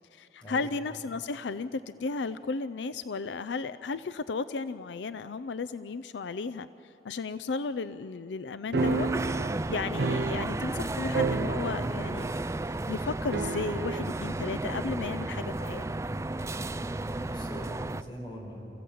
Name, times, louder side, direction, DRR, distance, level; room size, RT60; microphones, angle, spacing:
voice 1, 0.1-9.1 9.7-12.3 12.6-15.9, left 4 dB, 85° left, 14 dB, 0.5 m, -34 dB
sound 1, 8.7-10.9 11.1-12.1 12.4-12.5 13.3-14.1, right 4 dB, 65° right, 0.5 m, -31 dB
sound 2, 8.8-18.0, right 2 dB, 15° right, 0.4 m, -33 dB
voice 2, 10.3-10.9 16.9-18.7, equal, 30° left, 0 dB, 5.1 m, -42 dB
29.5 x 15.0 x 8.5 m, 2.9 s
head